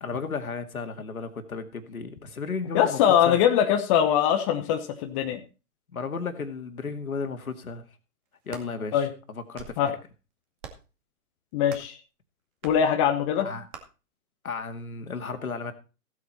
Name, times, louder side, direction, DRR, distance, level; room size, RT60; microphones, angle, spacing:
voice 1, 0.0-3.4 5.9-7.8 8.5-10.0 13.4-13.7 14.4-15.7, left 5 dB, 70° left, 7 dB, 2.2 m, -34 dB
voice 2, 2.7-5.4 8.9-9.1 9.8-9.9 11.5-12.0 12.6-13.5, left 9 dB, 20° left, 5 dB, 1.0 m, -22 dB
sound 1, 8.3-8.7 9.3-9.9 10.6-10.9 11.7-12.0 12.6-12.8 13.7-13.8, right 7 dB, 30° right, 2.3 m, -44 dB
16.0 x 8.0 x 4.3 m, 0.33 s
figure-of-eight pair, 130°, 44 cm